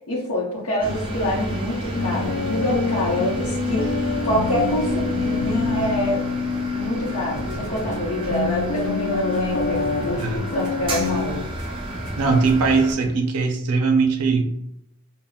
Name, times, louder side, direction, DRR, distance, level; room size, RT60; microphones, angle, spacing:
voice 1, 0.1-6.2 6.7-11.4, left 1 dB, 75° left, -6 dB, 0.7 m, -26 dB
sound 1, 0.8-12.9, right 1 dB, 25° right, 0.4 m, -31 dB
sound 2, 1.9-11.4, left 4 dB, 50° left, 0.3 m, -26 dB
sound 3, 7.0-13.1, equal, 10° left, 1.1 m, -37 dB
voice 2, 12.2-14.4, right 4 dB, 90° right, 4 dB, 0.4 m, -20 dB
3.5 x 2.1 x 2.3 m, 0.79 s
head